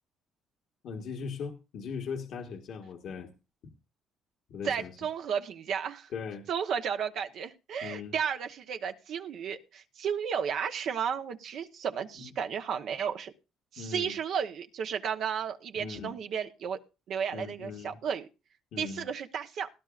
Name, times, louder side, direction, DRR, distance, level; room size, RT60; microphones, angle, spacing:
voice 1, 0.8-3.3 4.5-4.9 6.1-6.5 7.8-8.1 12.2-12.3 13.8-14.1 15.7-16.2 17.3-18.0 18.7-19.1, left 6 dB, 70° left, 4 dB, 1.5 m, -39 dB
voice 2, 4.6-6.1 6.5-13.3 13.7-16.8 17.1-18.3 18.8-19.7, right 7 dB, 65° right, 7 dB, 1.1 m, -33 dB
18.5 x 11.0 x 2.5 m, 0.29 s
cardioid pair, 90°, 0 cm